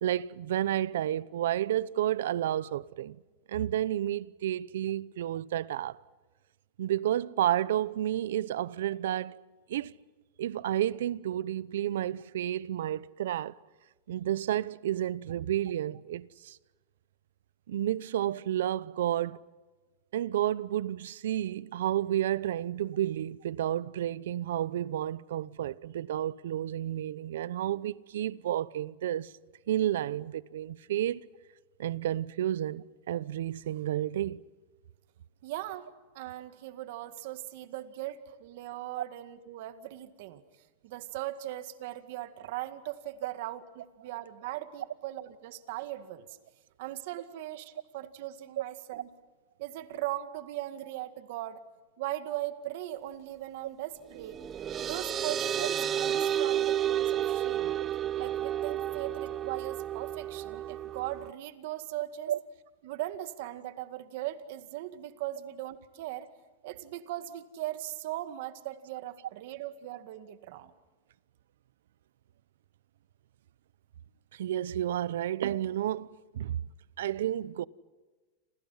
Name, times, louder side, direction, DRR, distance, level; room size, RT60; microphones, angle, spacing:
voice 1, 0.0-3.2 3.5-6.0 6.8-9.4 9.7-9.9 10.4-13.5 14.1-16.6 17.7-19.4 20.1-29.3 29.7-31.2 31.8-34.4 62.3-62.4 74.3-76.6 77.0-77.6, right 12 dB, 80° right, 0.8 m, -31 dB
voice 2, 35.4-35.9 36.1-40.4 40.8-46.3 46.8-49.1 49.6-51.6 52.0-54.4 54.8-57.8 58.2-62.3 62.8-66.3 66.6-70.7, right 14 dB, 60° right, 2.0 m, -39 dB
sound 1, 54.1-61.3, right 10 dB, 25° right, 0.7 m, -31 dB
29.0 x 27.5 x 5.8 m
supercardioid pair, 140°, 0 cm